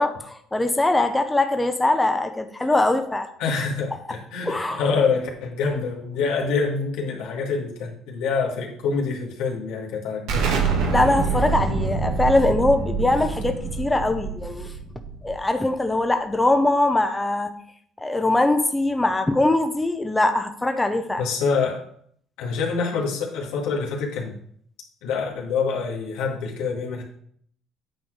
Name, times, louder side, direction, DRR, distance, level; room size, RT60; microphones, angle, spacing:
voice 1, 0.0-3.3 4.5-4.8 10.9-14.7 15.2-17.5 18.0-21.2, left 2 dB, 10° left, 6 dB, 0.7 m, -22 dB
voice 2, 3.4-10.5 21.2-21.8 22.4-24.3 25.0-27.0, left 5 dB, 90° left, 0 dB, 1.8 m, -26 dB
Explosion, 10.3-15.7, right 5 dB, 85° right, 1.6 m, -26 dB
8.9 x 4.1 x 4.7 m, 0.63 s
cardioid pair, 120°, 0 cm